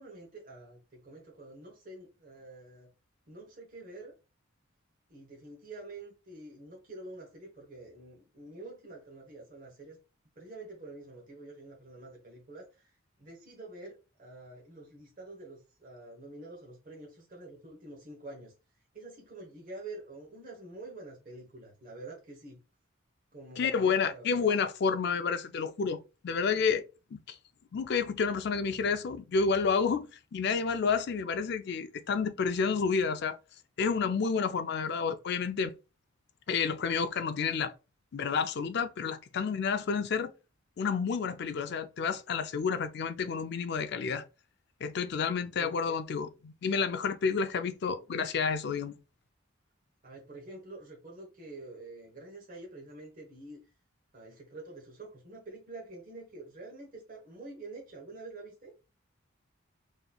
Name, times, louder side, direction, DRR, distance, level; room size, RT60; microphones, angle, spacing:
voice 1, 0.0-2.9 3.3-4.1 5.1-10.0 10.4-12.9 13.2-18.5 18.9-22.6 23.3-24.5 45.5-45.7 50.0-53.6 54.1-58.7, right 2 dB, 40° right, 1.0 m, -47 dB
voice 2, 23.6-26.0 26.2-26.8 27.1-27.4 27.7-33.4 33.8-35.7 36.5-37.7 38.1-40.3 40.8-44.2 44.8-49.0, left 5 dB, 55° left, 0.4 m, -30 dB
3.9 x 2.9 x 2.2 m
head